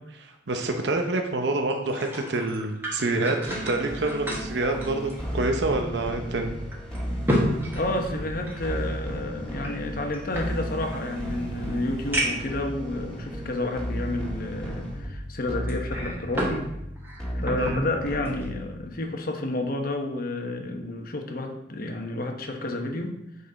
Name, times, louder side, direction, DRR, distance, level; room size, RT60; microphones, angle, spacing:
voice 1, 0.1-6.5 17.6-17.8, right 2 dB, 70° right, 4 dB, 0.8 m, -27 dB
sound 1, 1.7-5.7 6.0-6.1 6.7-8.7 9.6-11.0 11.6-11.7 12.1-12.6 13.3-13.4 15.7-16.6 17.0-17.8 18.3-18.5, equal, 10° right, 1.5 m, -31 dB
sound 2, 3.5-18.9, equal, 5° left, 2.0 m, -34 dB
voice 2, 7.7-16.7 17.3-23.2, left 2 dB, 55° left, 4 dB, 1.0 m, -30 dB
7.8 x 5.5 x 4.0 m, 0.84 s
head